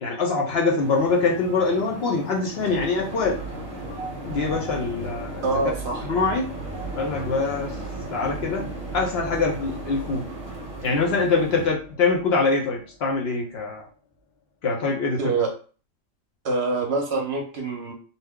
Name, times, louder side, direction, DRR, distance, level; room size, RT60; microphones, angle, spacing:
voice 1, 0.0-3.4 4.3-5.5 6.0-6.5 6.9-7.7 8.1-10.3 10.8-13.8 14.6-15.4, left 4 dB, 60° left, -1 dB, 0.7 m, -24 dB
sound 1, 0.8-11.7, right 2 dB, 20° right, 1.0 m, -38 dB
sound 2, 2.5-14.3, right 2 dB, 80° left, 1.0 m, -39 dB
voice 2, 5.4-6.1 15.2-15.5 16.4-17.9, right 3 dB, 60° right, 1 dB, 0.8 m, -25 dB
2.7 x 2.0 x 3.5 m, 0.39 s
omnidirectional pair, 1.4 m